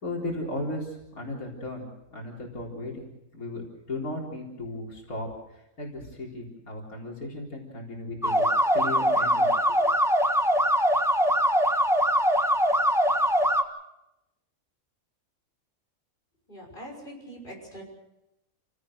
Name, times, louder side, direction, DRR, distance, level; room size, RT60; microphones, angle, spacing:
voice 1, 0.0-5.3 5.8-8.5 8.7-9.8, left 1 dB, 85° left, -2 dB, 4.5 m, -36 dB
sound 1, 8.2-13.6, equal, ahead, 1.3 m, -22 dB
voice 2, 16.5-17.8, equal, 35° left, 0 dB, 6.5 m, -43 dB
29.0 x 17.5 x 6.5 m, 0.88 s
omnidirectional pair, 1.5 m